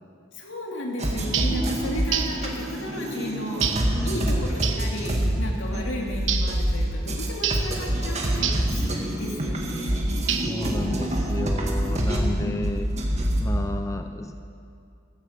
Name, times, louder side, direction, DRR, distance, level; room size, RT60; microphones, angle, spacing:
voice 1, 0.3-3.8 4.0-10.0 12.4-12.6, left 1 dB, 75° left, 0 dB, 2.7 m, -34 dB
sound 1, 1.0-13.4, equal, 35° right, 2.0 m, -26 dB
sound 2, 1.3-1.6 2.1-2.4 3.6-3.9 4.6-4.9 6.3-6.6 7.4-7.7 8.4-8.7 10.3-10.7, right 9 dB, 70° right, 1.1 m, -27 dB
voice 2, 3.9-4.4 10.2-14.3, left 1 dB, 15° left, 6 dB, 0.6 m, -32 dB
15.0 x 14.0 x 6.6 m, 2.5 s
head